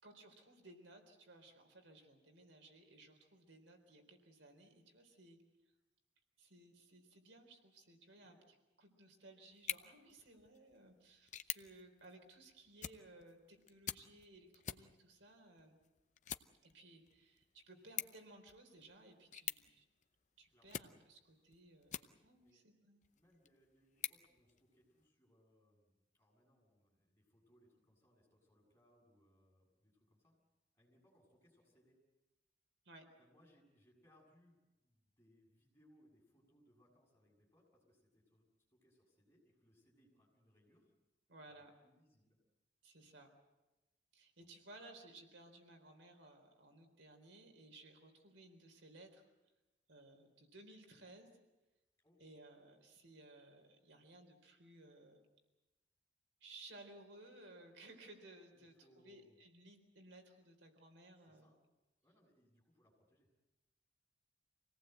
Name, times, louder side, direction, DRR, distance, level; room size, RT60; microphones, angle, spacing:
voice 1, 0.0-5.4 6.4-8.4 8.8-15.8 16.6-19.8 20.4-23.0 32.9-33.1 41.3-41.7 42.8-43.3 44.1-49.2 49.9-51.3 52.2-55.2 56.4-61.5, right 2 dB, 85° right, 4 dB, 4.0 m, -59 dB
sound 1, 9.5-22.5 23.0-25.1, left 10 dB, 40° left, 0.7 m, -50 dB
voice 2, 20.5-20.8 22.4-22.6 23.1-30.3 30.7-32.0 33.2-38.4 38.7-40.9 41.5-42.4 44.4-44.5 52.0-52.2 58.5-59.4 61.2-61.6 62.0-63.4, equal, 15° left, -3 dB, 7.5 m, -71 dB
26.0 x 18.0 x 8.0 m, 1.0 s
head